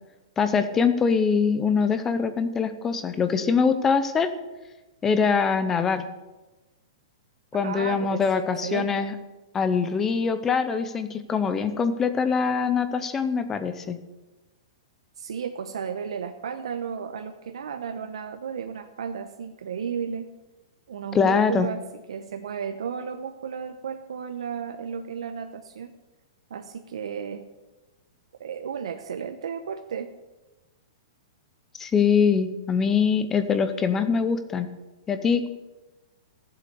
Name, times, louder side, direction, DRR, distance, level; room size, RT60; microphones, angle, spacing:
voice 1, 0.4-4.3 5.0-6.1 7.5-9.1 9.5-14.0 21.1-21.7 31.8-34.7 35.1-35.5, left 6 dB, 10° left, 11 dB, 0.6 m, -23 dB
voice 2, 7.6-9.1 15.2-20.3 20.9-25.9 26.5-27.5 28.4-30.1, right 7 dB, 90° right, 6 dB, 1.0 m, -34 dB
14.0 x 7.8 x 6.9 m, 1.1 s
hypercardioid pair, 175°, 3 cm